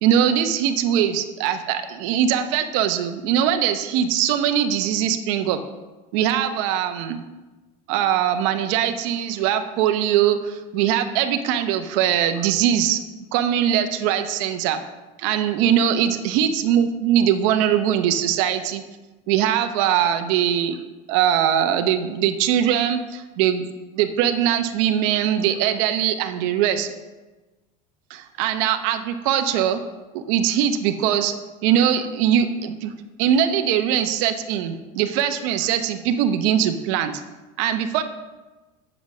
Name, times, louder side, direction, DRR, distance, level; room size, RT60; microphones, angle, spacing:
voice 1, 0.0-5.6 6.1-7.2 7.9-13.0 13.3-14.8 15.2-18.8 19.3-20.8 21.1-23.7 24.0-26.9 28.1-29.8 30.1-31.3 31.6-32.9 33.2-37.1 37.6-38.0, right 10 dB, 70° right, 7 dB, 0.8 m, -21 dB
8.0 x 6.2 x 6.2 m, 1.2 s
supercardioid pair, 145°, 17 cm